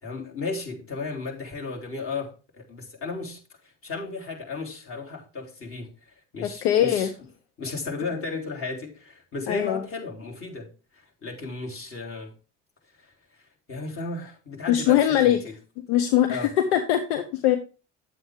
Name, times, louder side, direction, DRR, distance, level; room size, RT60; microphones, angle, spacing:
voice 1, 0.0-5.9 6.3-7.1 7.6-10.7 11.2-12.3 13.0-13.1 13.7-15.6 16.3-16.5, left 3 dB, 40° left, 3.7 m, -34 dB
voice 2, 6.4-7.1 9.5-9.8 14.7-15.4 15.9-17.6, left 11 dB, 75° left, 1.0 m, -21 dB
10.0 x 7.8 x 3.7 m
hypercardioid pair, 65°, 34 cm